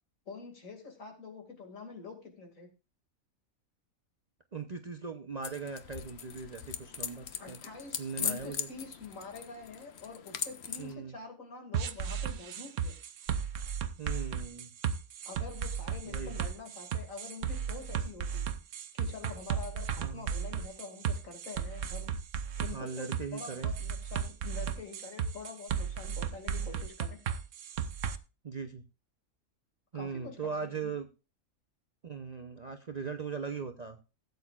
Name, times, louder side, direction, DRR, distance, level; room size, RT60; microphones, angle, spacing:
voice 1, 0.3-2.7 7.4-12.9 15.2-18.5 18.9-22.1 22.6-27.2 29.9-30.9, left 4 dB, 70° left, 3 dB, 2.7 m, -46 dB
voice 2, 4.5-7.6 8.0-8.7 10.8-11.1 14.0-14.7 16.0-16.3 20.0-20.3 22.7-23.7 28.4-28.8 29.9-31.1 32.0-34.0, right 5 dB, 40° right, 6 dB, 0.7 m, -39 dB
sound 1, 5.4-10.9, left 7 dB, 55° left, 1.0 m, -40 dB
sound 2, 11.7-28.2, right 7 dB, 65° right, 1.1 m, -35 dB
16.5 x 8.1 x 2.4 m, 0.30 s
omnidirectional pair, 1.4 m